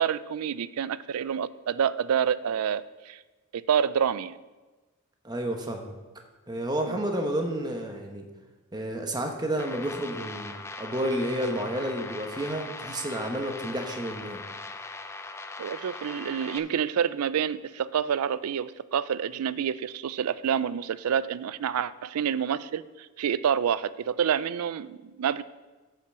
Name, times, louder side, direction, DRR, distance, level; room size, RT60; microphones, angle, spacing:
voice 1, 0.0-3.2 3.5-4.4 6.9-7.0 15.6-25.4, right 8 dB, 90° right, 17 dB, 0.4 m, -28 dB
voice 2, 5.2-5.9 6.5-8.2 8.7-14.4, right 1 dB, 20° right, 3 dB, 1.0 m, -31 dB
sound 1, 9.6-16.6, left 3 dB, 10° left, 0.4 m, -40 dB
8.2 x 5.8 x 6.9 m, 1.2 s
head